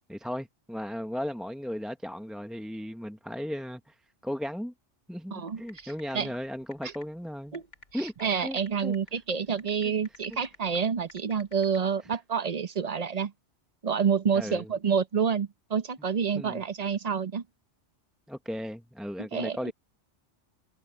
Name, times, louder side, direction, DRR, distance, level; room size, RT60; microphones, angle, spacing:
voice 1, 0.1-3.9 4.2-4.7 5.1-7.6 7.9-8.1 8.4-8.9 14.3-14.7 16.3-16.6 18.3-19.7, equal, ahead, 0.7 m, -36 dB
voice 2, 5.3-6.3 6.8-6.9 7.5-7.6 7.9-13.3 13.8-17.4 19.3-19.7, right 6 dB, 40° right, 0.8 m, -28 dB
sound 1, 5.5-11.8, left 2 dB, 80° left, 3.3 m, -52 dB
omnidirectional pair, 1.2 m